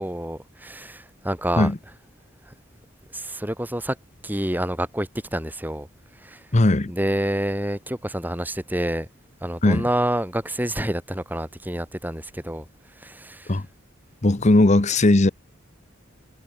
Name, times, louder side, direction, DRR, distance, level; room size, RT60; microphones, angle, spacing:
voice 1, 0.0-1.7 3.1-3.9 4.2-5.9 6.2-6.4 6.9-9.1 9.4-12.6 13.0-13.5, right 1 dB, 10° right, 4.9 m, -28 dB
voice 2, 6.5-6.9 9.6-9.9 13.5-13.7 14.2-15.3, left 2 dB, 35° left, 0.9 m, -18 dB
head